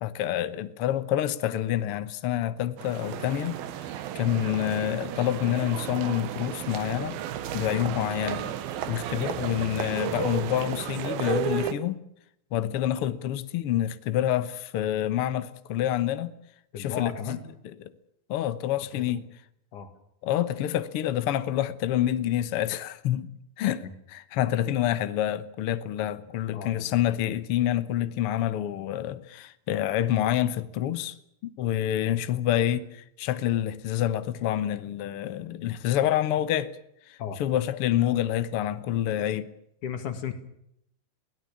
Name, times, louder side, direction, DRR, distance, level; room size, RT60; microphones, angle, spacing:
voice 1, 0.0-3.6 4.1-7.2 7.5-8.5 8.9-12.0 12.5-16.3 16.8-17.4 18.3-19.3 20.2-23.3 23.6-31.2 31.4-36.8 37.1-39.5, left 12 dB, 75° left, 1.3 m, -27 dB
sound 1, 2.8-11.7, right 10 dB, 85° right, 3.1 m, -33 dB
voice 2, 16.7-17.4 18.9-19.1 19.7-19.9 23.8-23.9 26.5-27.0 37.2-37.4 39.8-40.3, left 8 dB, 60° left, 3.6 m, -35 dB
23.0 x 17.5 x 8.6 m
omnidirectional pair, 4.2 m